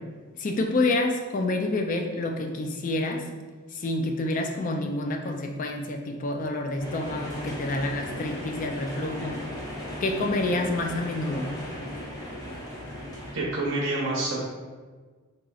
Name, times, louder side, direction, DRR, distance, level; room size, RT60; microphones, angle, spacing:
voice 1, 0.4-3.2 3.7-9.4 10.0-11.5, left 2 dB, 35° left, 3 dB, 0.3 m, -28 dB
sound 1, 6.8-13.4, equal, 15° left, 0.7 m, -37 dB
voice 2, 13.3-14.4, right 2 dB, 60° right, -4 dB, 0.7 m, -27 dB
3.9 x 2.9 x 2.3 m, 1.5 s
head